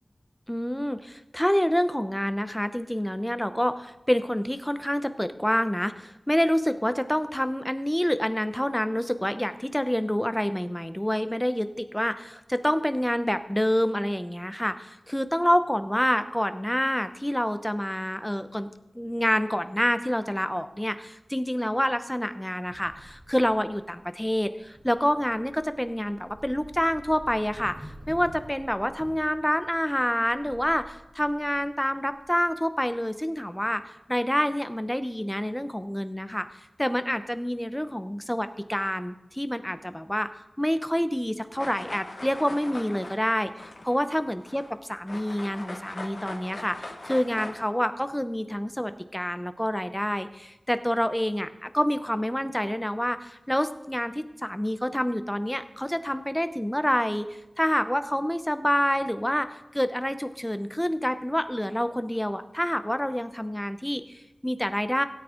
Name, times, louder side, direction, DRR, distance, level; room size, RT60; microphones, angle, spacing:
voice 1, 0.5-18.7 18.9-27.7 28.1-36.5 36.8-40.3 40.6-57.3 57.6-65.0, equal, 10° left, 10 dB, 0.8 m, -27 dB
sound 1, 22.7-32.9, right 1 dB, 30° right, 5.2 m, -49 dB
sound 2, 41.6-44.7 45.1-47.7, left 2 dB, 70° left, 1.6 m, -41 dB
16.5 x 8.9 x 3.8 m, 0.94 s
wide cardioid pair, 60°, 0 cm